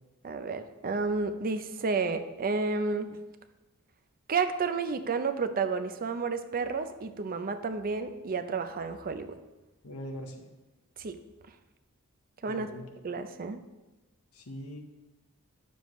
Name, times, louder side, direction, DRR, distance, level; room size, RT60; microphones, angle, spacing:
voice 1, 0.2-3.2 4.3-9.4 11.0-11.2 12.4-12.7 13.0-13.6, right 4 dB, 40° right, 9 dB, 0.5 m, -31 dB
voice 2, 9.8-10.5 12.5-12.9 14.3-14.8, equal, 75° left, 4 dB, 1.1 m, -41 dB
9.4 x 6.9 x 3.1 m, 1.1 s
head